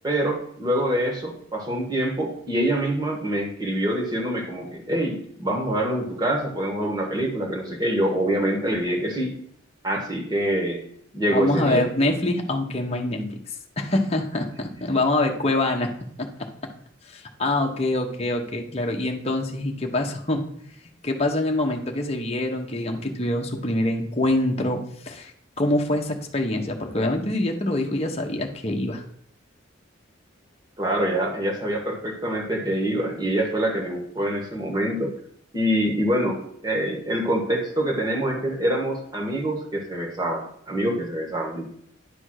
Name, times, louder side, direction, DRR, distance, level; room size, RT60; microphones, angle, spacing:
voice 1, 0.0-9.3 9.8-10.8 11.1-11.9 13.1-13.3 30.8-35.2 35.5-41.7, right 1 dB, 20° right, 1 dB, 1.4 m, -25 dB
voice 2, 11.3-13.2 13.8-15.9 16.2-16.5 17.1-20.5 21.0-25.3 25.6-29.0, left 1 dB, 30° left, 2 dB, 0.9 m, -25 dB
10.0 x 3.5 x 6.3 m, 0.67 s
head